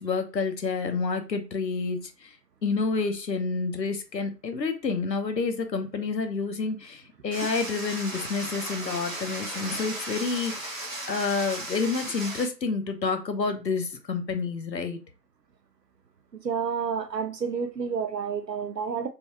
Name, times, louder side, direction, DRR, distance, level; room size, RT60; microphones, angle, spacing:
voice 1, 0.0-2.4 2.6-15.0, left 4 dB, 85° left, 1.0 m, -29 dB
sound 1, 7.3-12.4, right 1 dB, 55° right, 1.6 m, -36 dB
voice 2, 16.4-19.1, right 6 dB, 80° right, 0.8 m, -29 dB
5.3 x 2.2 x 2.9 m
figure-of-eight pair, 175°, 49 cm